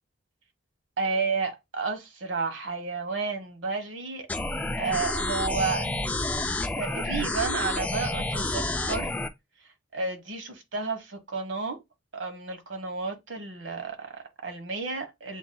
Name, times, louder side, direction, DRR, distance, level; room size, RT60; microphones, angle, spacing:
voice 1, 1.0-4.3 4.8-5.9 6.7-9.1 9.9-11.8 12.1-15.4, right 4 dB, 85° right, 1.3 m, -31 dB
sound 1, 4.3-9.3, left 2 dB, 10° left, 0.4 m, -29 dB
7.9 x 2.8 x 2.2 m
head